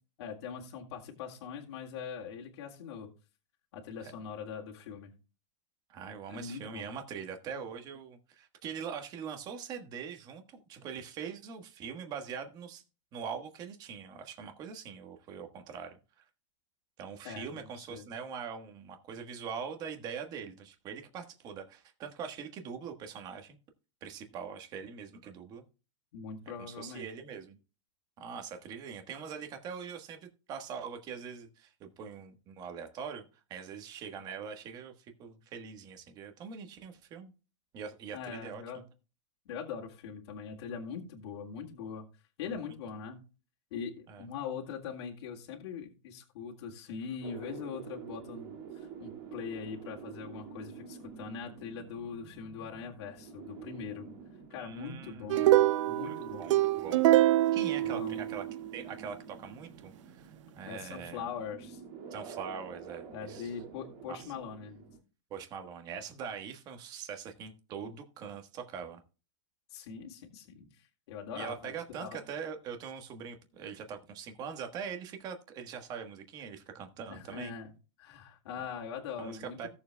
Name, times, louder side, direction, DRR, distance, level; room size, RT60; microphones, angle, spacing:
voice 1, 0.2-3.1 3.7-5.1 6.3-6.8 17.2-18.1 26.1-27.1 38.1-38.8 39.5-42.1 42.4-43.2 43.7-54.1 54.5-55.6 55.9-56.5 57.8-58.3 60.7-61.8 63.1-64.8 69.7-71.7 72.0-72.2 77.1-77.7 78.0-79.7, left 6 dB, 55° left, -1 dB, 2.0 m, -42 dB
voice 2, 5.9-12.8 13.1-16.2 17.0-23.6 24.0-25.6 26.7-27.6 28.2-30.2 30.5-33.2 33.5-34.9 35.2-37.3 37.7-38.6 44.1-44.2 54.5-55.5 56.0-57.0 57.5-58.4 58.7-61.3 62.1-63.5 64.1-64.2 65.3-69.0 71.3-77.5 79.2-79.7, right 6 dB, 25° right, 6 dB, 1.3 m, -42 dB
sound 1, 47.2-65.0, right 6 dB, 45° right, 2.1 m, -48 dB
sound 2, 55.3-58.7, right 15 dB, 75° right, 0.5 m, -25 dB
17.0 x 7.1 x 2.2 m, 0.34 s
supercardioid pair, 170°, 16 cm